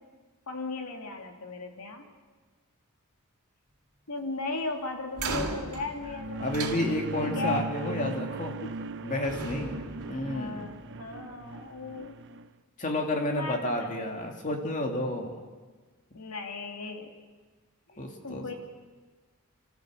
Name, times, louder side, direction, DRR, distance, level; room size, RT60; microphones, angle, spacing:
voice 1, 0.5-2.1 4.1-6.5 7.2-7.6 8.0-8.1 8.6-8.7 10.3-12.2 13.2-14.1 16.1-17.1 17.9-18.5, left 3 dB, 90° left, 4 dB, 2.5 m, -36 dB
sound 1, 5.1-7.4 8.5-8.9 9.2-11.0, right 3 dB, 85° right, 2.5 m, -37 dB
sound 2, 5.8-12.5, right 3 dB, 55° right, 0.7 m, -38 dB
voice 2, 6.4-8.6 9.0-9.7 10.1-10.6 12.8-15.3 18.0-18.5, left 1 dB, 35° left, 2 dB, 2.6 m, -31 dB
26.5 x 14.0 x 7.9 m, 1.4 s
head